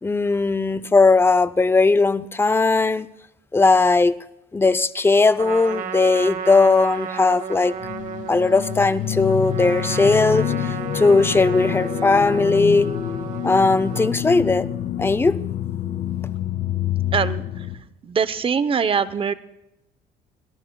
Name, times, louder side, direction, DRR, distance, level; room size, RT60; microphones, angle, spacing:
voice 1, 0.0-3.1 3.5-4.2 4.5-7.8 8.3-12.9 13.4-14.7 15.0-15.4, left 3 dB, 15° left, 14 dB, 0.6 m, -18 dB
Trumpet, 5.3-14.1, right 8 dB, 50° right, 1.8 m, -33 dB
sound 1, 7.8-17.8, left 11 dB, 65° left, 2.0 m, -27 dB
voice 2, 17.1-17.4 18.0-19.3, right 6 dB, 30° right, 14 dB, 0.8 m, -22 dB
24.5 x 18.0 x 2.3 m, 0.90 s
cardioid pair, 110°, 17 cm